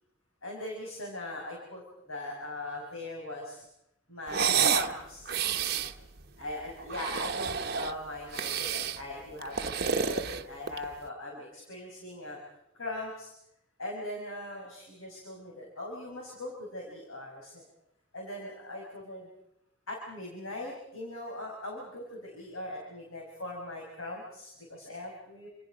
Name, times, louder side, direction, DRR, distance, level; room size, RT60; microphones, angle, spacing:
voice 1, 0.4-3.6 4.1-5.4 5.8-5.9 6.4-12.4 12.7-13.3 13.8-17.6 18.1-19.3 19.9-25.5, left 1 dB, 80° left, -1 dB, 5.6 m, -40 dB
sound 1, 4.3-4.9 5.3-5.9 6.8-8.0 8.3-9.0 9.4-10.9, right 7 dB, 50° right, 1.0 m, -29 dB
28.5 x 27.5 x 5.1 m, 0.83 s
head